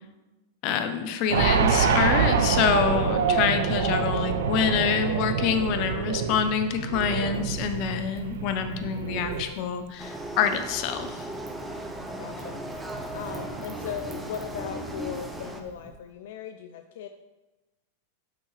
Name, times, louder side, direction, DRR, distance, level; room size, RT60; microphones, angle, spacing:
voice 1, 0.6-11.2, left 7 dB, 45° left, 8 dB, 0.8 m, -26 dB
sound 1, 1.3-9.4, right 6 dB, 80° right, 0.7 m, -26 dB
Wind / Fire, 7.3-15.9, right 4 dB, 25° right, 1.4 m, -46 dB
sound 2, 10.0-15.6, right 1 dB, 5° right, 0.7 m, -37 dB
voice 2, 12.2-17.1, left 8 dB, 70° left, 7 dB, 0.4 m, -38 dB
8.3 x 5.8 x 3.4 m, 1.1 s
supercardioid pair, 140°, 0 cm